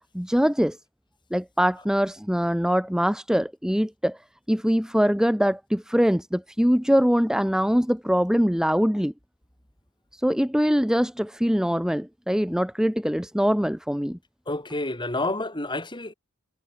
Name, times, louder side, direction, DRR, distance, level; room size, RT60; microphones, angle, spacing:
voice 1, 0.1-0.8 1.3-4.2 4.5-9.1 10.1-14.2, equal, 5° right, 1.4 m, -23 dB
voice 2, 14.5-16.1, left 2 dB, 20° left, 7.3 m, -29 dB
head